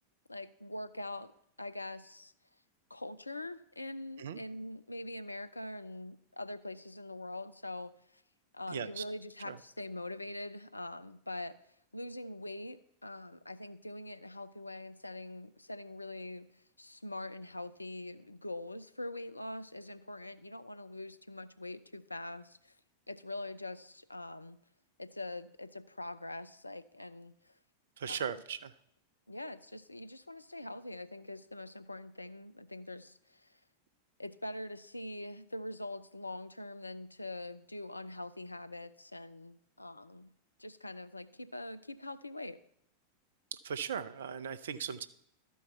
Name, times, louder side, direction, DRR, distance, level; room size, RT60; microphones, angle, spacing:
voice 1, 0.3-1.3 1.6-2.3 2.9-7.9 8.5-11.6 11.9-16.5 16.8-22.7 23.1-24.6 25.0-27.5 28.1-28.3 29.3-33.5 34.2-40.3 40.6-42.6, left 1 dB, 85° left, 12 dB, 0.5 m, -43 dB
voice 2, 8.7-9.0 9.5-9.6 28.0-28.7 43.6-45.1, right 7 dB, 60° right, 15 dB, 0.5 m, -38 dB
13.0 x 4.6 x 5.6 m, 0.73 s
figure-of-eight pair, 90°, 0 cm